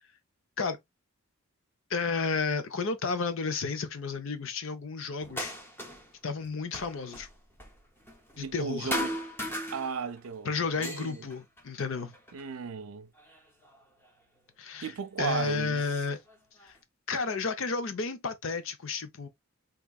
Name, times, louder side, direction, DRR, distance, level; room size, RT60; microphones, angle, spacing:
voice 1, 1.9-5.5 6.2-7.3 8.4-8.9 10.4-12.1 14.6-16.2 16.6-16.8 17.1-19.3, left 4 dB, 60° left, 0.6 m, -32 dB
sound 1, 5.2-6.2 6.4-8.6 8.9-10.3 10.6-12.5 13.2-14.1 15.0-15.1 15.7-16.8, equal, 10° left, 0.7 m, -38 dB
voice 2, 8.4-9.2 9.7-11.2 12.3-13.1 14.8-15.8, right 6 dB, 70° right, 0.5 m, -35 dB
3.5 x 2.9 x 2.3 m
head